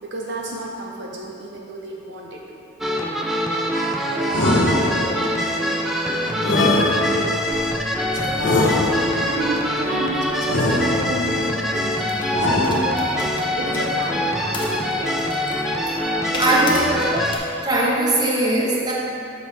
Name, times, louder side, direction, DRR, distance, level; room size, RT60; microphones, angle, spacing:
voice 1, 0.0-2.7 3.5-3.8 4.0-5.6 6.1-7.5 7.9-8.8 9.1-13.1 13.6-15.2 15.6-15.7 16.0-16.8, right 1 dB, 60° right, -1 dB, 0.6 m, -31 dB
sound 1, 2.8-17.4, equal, ahead, 0.3 m, -24 dB
sound 2, 4.3-5.4 6.4-7.5 8.4-9.3 10.5-11.4 12.3-13.3, left 2 dB, 65° left, 0.7 m, -21 dB
voice 2, 4.3-4.7 6.2-6.7 8.1-8.4 16.4-17.0 17.4-18.9, right 1 dB, 20° right, -4 dB, 0.9 m, -22 dB
sound 3, 7.4-17.4, left 1 dB, 25° left, 0.8 m, -37 dB
6.0 x 5.4 x 4.2 m, 2.6 s
head